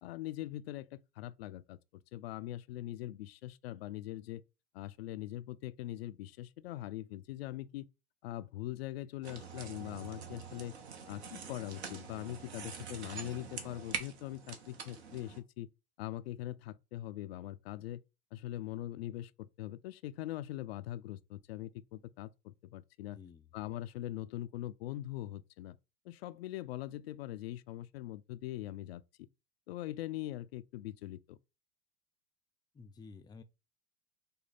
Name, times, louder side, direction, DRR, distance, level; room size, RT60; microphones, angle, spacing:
voice 1, 0.0-1.8 2.1-4.4 4.7-7.9 8.2-10.7 11.1-15.7 16.0-18.0 18.3-23.2 23.5-25.8 26.0-29.0 29.7-31.4, left 14 dB, 65° left, 0.4 m, -42 dB
sound 1, 9.2-15.4, right 6 dB, 70° right, 1.2 m, -45 dB
voice 2, 23.1-23.5 32.7-33.4, left 5 dB, 15° left, 0.5 m, -52 dB
5.1 x 2.2 x 4.2 m
hypercardioid pair, 85°, 33 cm